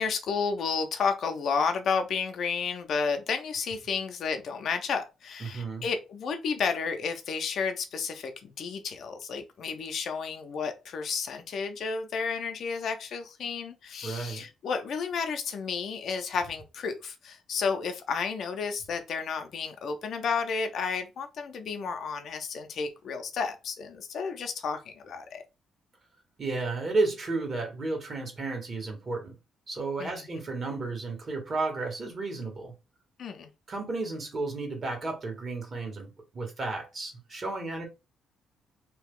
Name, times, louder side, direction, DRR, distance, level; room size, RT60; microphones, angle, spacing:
voice 1, 0.0-25.4 30.0-30.3 33.2-33.5, left 5 dB, 65° left, 0.6 m, -32 dB
voice 2, 5.4-5.9 14.0-14.4 26.4-29.4 29.7-32.7 33.7-37.8, right 3 dB, 40° right, 1.4 m, -32 dB
2.8 x 2.3 x 3.6 m
cardioid pair, 90°, 0 cm